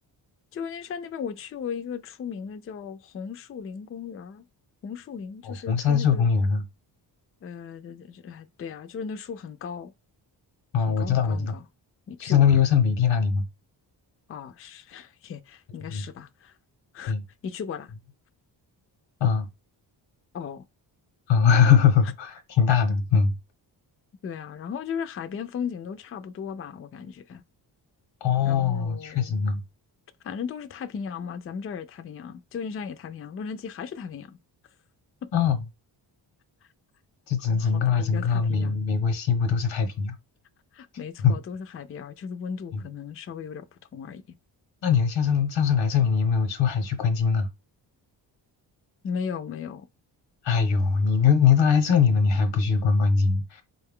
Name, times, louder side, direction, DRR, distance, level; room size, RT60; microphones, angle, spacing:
voice 1, 0.5-4.4 4.8-6.3 7.4-9.9 10.9-11.7 12.1-12.6 14.3-16.6 16.9-17.1 17.4-17.9 20.3-20.7 24.2-27.4 28.4-29.4 30.2-34.4 35.2-35.3 37.5-38.8 40.7-44.2 49.0-49.9, left 6 dB, 35° left, 0.4 m, -36 dB
voice 2, 5.4-6.6 10.7-11.6 12.2-13.4 15.8-16.0 17.1-17.2 19.2-19.5 21.3-23.3 28.2-29.6 35.3-35.6 37.3-40.1 41.2-41.3 42.7-42.8 44.8-47.5 50.4-53.6, left 6 dB, 90° left, 1.0 m, -22 dB
4.1 x 2.3 x 3.6 m
cardioid pair, 80°, 44 cm